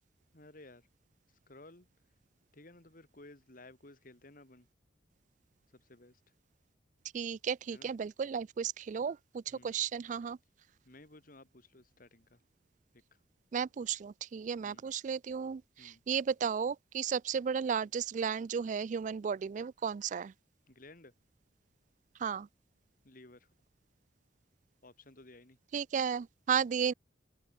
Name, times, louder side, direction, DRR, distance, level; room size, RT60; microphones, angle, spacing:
voice 1, 0.3-0.9 1.5-1.9 2.5-4.7 5.7-6.2 7.7-7.9 9.5-9.8 10.8-12.4 14.6-14.9 15.8-16.0 20.7-21.1 23.0-23.5 24.8-25.6, left 2 dB, 50° left, 2.5 m, -56 dB
voice 2, 7.1-10.4 13.5-20.3 22.2-22.5 25.7-26.9, right 7 dB, 40° right, 0.3 m, -34 dB
open air
head